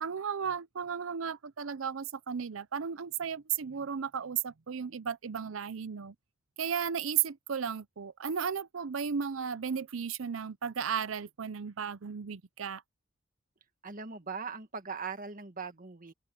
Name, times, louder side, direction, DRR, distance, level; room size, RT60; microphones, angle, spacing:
voice 1, 0.0-6.1 6.6-12.8, right 7 dB, 85° right, 0.6 m, -34 dB
voice 2, 13.8-16.1, right 5 dB, 45° right, 1.7 m, -40 dB
open air
head